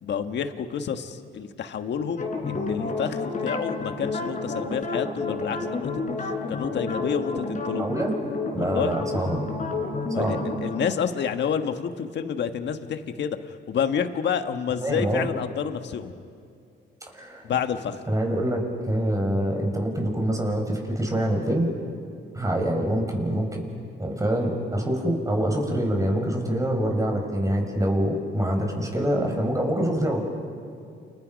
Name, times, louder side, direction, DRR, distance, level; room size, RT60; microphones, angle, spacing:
voice 1, 0.0-5.9 6.2-7.9 8.6-8.9 10.1-16.1 17.4-18.0, left 7 dB, 60° left, 7 dB, 1.6 m, -29 dB
sound 1, 2.2-10.9, left 3 dB, 40° left, 4.4 m, -30 dB
voice 2, 7.8-8.1 8.5-9.5 10.2-10.4 14.8-15.2 17.1-17.5 18.1-18.6 18.9-21.7 22.3-23.6 24.0-30.2, right 1 dB, 15° right, 2 dB, 5.6 m, -25 dB
29.5 x 29.0 x 5.3 m, 2.4 s
cardioid pair, 90°, 20 cm